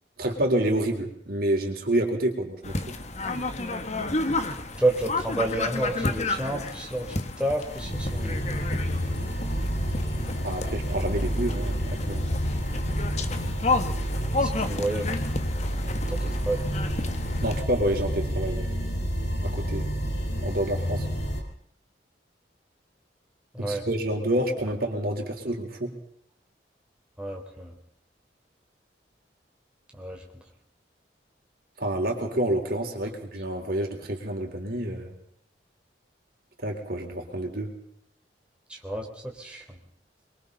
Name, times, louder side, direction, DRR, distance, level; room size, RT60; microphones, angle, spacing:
voice 1, 0.2-3.0 10.4-12.2 17.4-18.9 19.4-20.0 20.4-21.1 23.6-25.9 31.8-35.1 36.6-37.7, right 1 dB, 60° right, 2 dB, 4.1 m, -28 dB
sound 1, 2.6-17.6, left 2 dB, 40° left, 1.5 m, -32 dB
voice 2, 4.8-8.4 14.3-15.1 16.1-16.6 23.5-23.8 27.2-27.7 30.0-30.2 38.7-39.8, right 1 dB, 5° right, -1 dB, 3.6 m, -30 dB
sound 2, 7.7-21.4, equal, 80° left, 5.5 m, -29 dB
27.5 x 23.0 x 4.1 m, 0.68 s
head